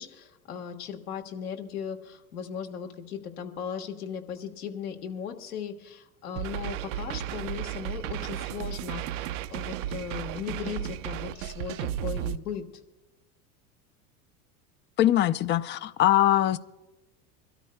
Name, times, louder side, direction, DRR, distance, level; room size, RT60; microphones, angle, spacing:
voice 1, 0.0-12.6, left 8 dB, 75° left, 3 dB, 1.6 m, -37 dB
sound 1, 6.4-12.4, right 11 dB, 60° right, 0.7 m, -34 dB
voice 2, 15.0-16.6, left 13 dB, 25° left, 15 dB, 0.5 m, -22 dB
26.0 x 13.0 x 2.2 m, 1.1 s
hypercardioid pair, 80°, 45 cm